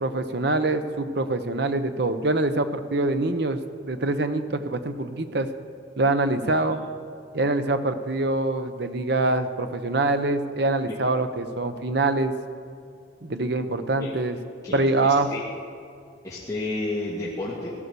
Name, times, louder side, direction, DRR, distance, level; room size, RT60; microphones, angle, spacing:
voice 1, 0.0-5.5 6.0-6.8 7.3-12.3 13.2-14.4 14.7-15.3, right 2 dB, 60° right, 9 dB, 0.9 m, -24 dB
voice 2, 6.4-6.8 14.0-14.1 14.6-15.4 16.2-17.7, left 2 dB, 20° left, -7 dB, 1.9 m, -32 dB
17.0 x 11.5 x 6.9 m, 2.5 s
head